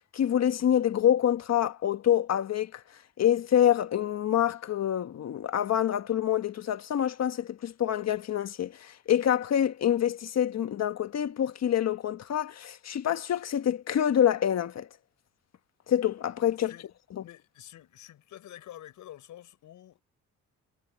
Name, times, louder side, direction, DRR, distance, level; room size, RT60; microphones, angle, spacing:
voice 1, 0.1-2.8 3.2-14.9 15.9-16.7, left 10 dB, 60° left, 1.6 m, -26 dB
voice 2, 17.2-20.0, left 12 dB, 75° left, 5.4 m, -48 dB
cardioid pair, 90°, 30 cm